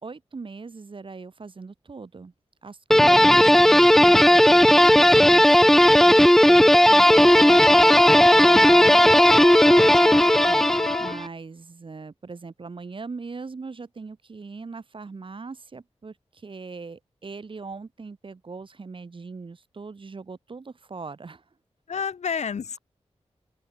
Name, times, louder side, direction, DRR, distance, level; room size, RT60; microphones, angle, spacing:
voice 1, 0.0-2.3 2.6-9.1 10.4-10.6 11.0-21.4, right 4 dB, 50° right, 5.5 m, -40 dB
sound 1, 2.9-11.2, equal, 5° left, 0.4 m, -15 dB
voice 2, 3.0-3.3 9.6-10.2 21.9-22.8, left 6 dB, 90° left, 1.4 m, -32 dB
Wind instrument woodwind instrument, 7.0-11.2, left 4 dB, 40° left, 0.8 m, -28 dB
open air
wide cardioid pair, 130°, 11 cm